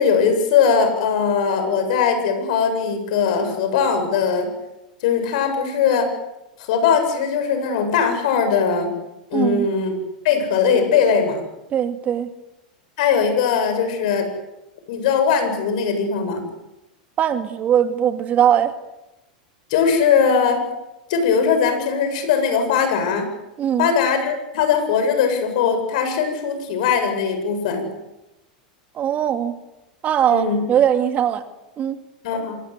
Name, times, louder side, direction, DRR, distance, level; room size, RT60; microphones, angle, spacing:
voice 1, 0.0-4.5 5.0-6.1 6.7-8.9 9.3-9.9 10.2-11.4 13.0-14.3 14.9-16.4 19.7-20.6 21.1-23.3 23.8-27.9 30.3-30.6 32.2-32.6, left 6 dB, 65° left, 7 dB, 7.9 m, -20 dB
voice 2, 9.3-9.7 11.7-12.3 17.2-18.7 23.6-23.9 28.9-29.6 30.0-31.4 31.8-32.0, right 9 dB, 35° right, 8 dB, 2.5 m, -20 dB
26.5 x 24.0 x 8.2 m, 0.94 s
hypercardioid pair, 100°, 4 cm